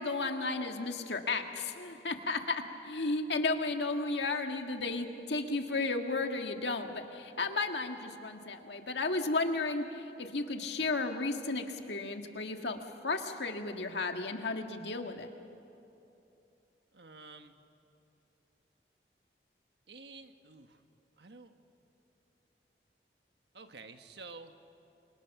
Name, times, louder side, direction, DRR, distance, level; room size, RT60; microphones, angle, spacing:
voice 1, 0.0-15.3, left 3 dB, 85° left, 5 dB, 1.8 m, -34 dB
voice 2, 16.9-17.6 19.9-20.8 21.2-21.5 23.5-24.5, right 3 dB, 80° right, 7 dB, 1.4 m, -50 dB
28.5 x 24.5 x 6.0 m, 2.9 s
head